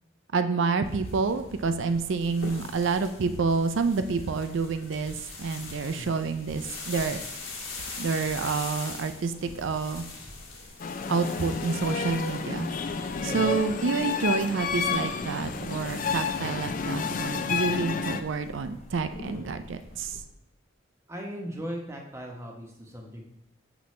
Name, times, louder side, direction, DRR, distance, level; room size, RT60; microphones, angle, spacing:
voice 1, 0.3-7.2 8.0-10.0 11.1-12.7 13.3-20.2, right 4 dB, 65° right, 9 dB, 0.4 m, -28 dB
sound 1, 0.8-20.2, left 3 dB, 80° left, 1.6 m, -43 dB
sound 2, 10.8-18.2, left 5 dB, 40° left, 0.3 m, -30 dB
voice 2, 13.1-13.5 21.1-23.2, equal, 15° right, 0 dB, 1.0 m, -38 dB
6.9 x 6.0 x 3.1 m, 0.80 s
head